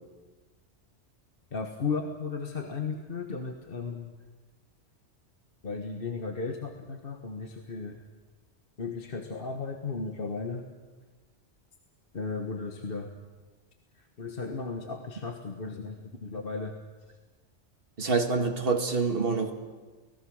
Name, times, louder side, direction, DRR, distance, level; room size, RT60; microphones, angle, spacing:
voice 1, 1.5-4.1 5.6-8.1 8.8-10.7 12.1-13.1 14.0-16.8, left 4 dB, 55° left, 4 dB, 1.5 m, -35 dB
voice 2, 18.0-19.5, right 4 dB, 55° right, 4 dB, 2.1 m, -26 dB
29.5 x 19.0 x 6.4 m, 1.3 s
omnidirectional pair, 1.2 m